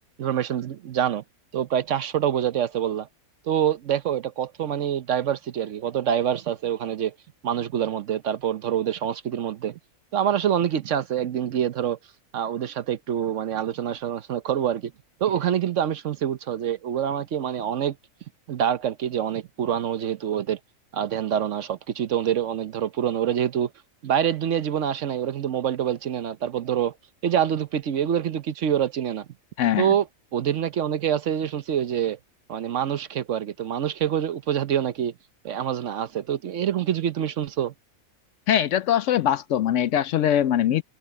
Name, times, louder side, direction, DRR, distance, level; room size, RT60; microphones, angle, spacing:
voice 1, 0.2-1.2 1.5-3.1 3.5-7.1 7.4-9.8 10.1-12.0 12.3-14.9 15.2-18.0 18.5-20.6 20.9-23.7 24.0-26.9 27.2-29.3 29.8-30.1 30.3-32.2 32.5-35.1 35.4-37.7, right 9 dB, 65° right, 1.0 m, -26 dB
voice 2, 38.5-40.8, left 10 dB, 70° left, 0.8 m, -22 dB
omnidirectional pair, 1.5 m